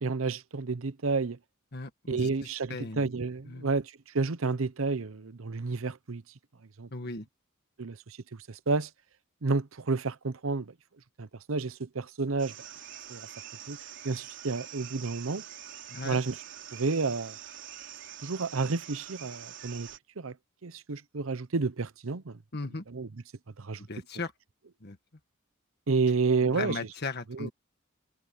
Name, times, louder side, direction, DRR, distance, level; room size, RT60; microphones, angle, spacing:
voice 1, 0.0-1.4 2.1-6.2 6.8-6.9 7.8-8.2 8.5-8.9 9.4-10.7 11.2-12.5 13.1-13.3 13.7-13.8 14.0-15.4 16.0-16.4 16.7-17.4 18.2-19.9 20.2-20.3 20.6-22.4 22.9-23.1 23.6-23.8 25.9-26.8 27.3-27.5, right 4 dB, 90° right, 0.8 m, -30 dB
voice 2, 1.7-3.1 3.5-3.7 6.9-7.3 15.9-16.2 22.5-22.8 23.8-24.3 24.8-25.0 26.4-27.5, left 3 dB, 55° left, 1.7 m, -37 dB
sound 1, 12.4-20.0, right 10 dB, 65° right, 3.9 m, -45 dB
head